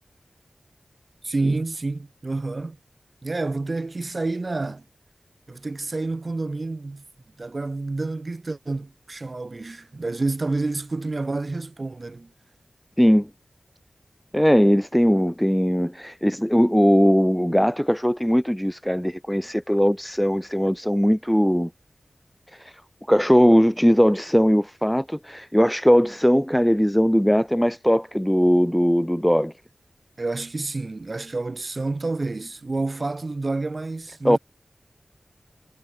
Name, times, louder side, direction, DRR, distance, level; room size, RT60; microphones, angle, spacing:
voice 1, 1.2-2.8 3.2-4.8 5.5-7.0 7.4-12.3 30.2-34.4, right 3 dB, 50° right, 6.9 m, -29 dB
voice 2, 13.0-13.3 14.3-21.7 23.1-29.5 34.2-34.4, equal, 5° left, 0.7 m, -19 dB
wide cardioid pair, 55°, 0 cm